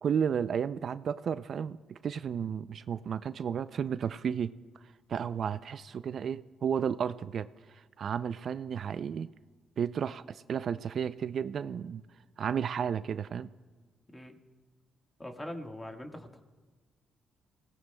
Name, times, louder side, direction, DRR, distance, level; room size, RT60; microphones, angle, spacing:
voice 1, 0.0-1.8 2.0-4.5 5.1-7.5 8.0-9.3 9.8-12.0 12.4-13.5, right 7 dB, 55° right, 14 dB, 0.3 m, -32 dB
voice 2, 15.2-16.4, left 1 dB, 15° left, 3 dB, 1.5 m, -42 dB
28.0 x 17.5 x 2.2 m, 1.4 s
cardioid pair, 90°, 0 cm